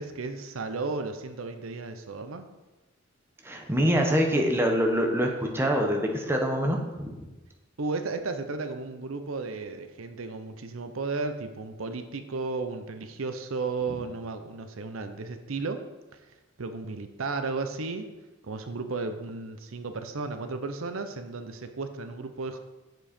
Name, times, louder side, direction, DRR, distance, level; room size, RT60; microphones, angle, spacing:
voice 1, 0.0-2.5 7.8-15.9 16.1-16.2 16.6-18.1 18.4-22.6, right 3 dB, 85° right, 8 dB, 0.7 m, -34 dB
voice 2, 3.4-7.2, equal, 10° right, 2 dB, 1.0 m, -25 dB
7.8 x 7.1 x 4.3 m, 1.1 s
head